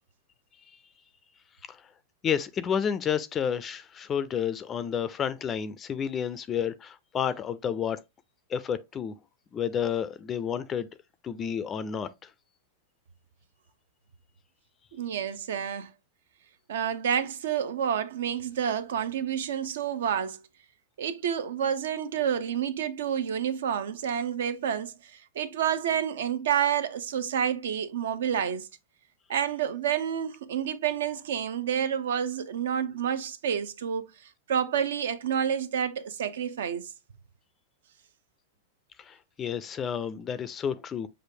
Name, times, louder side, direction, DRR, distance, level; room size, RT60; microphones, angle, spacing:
voice 1, 2.2-8.0 8.5-9.1 9.5-10.9 11.2-12.3 39.0-41.1, left 8 dB, 25° left, 0.3 m, -30 dB
voice 2, 14.9-15.9 16.7-20.4 21.0-28.7 29.3-36.9, right 8 dB, 80° right, 0.7 m, -29 dB
6.3 x 2.5 x 2.7 m
supercardioid pair, 140°, 0 cm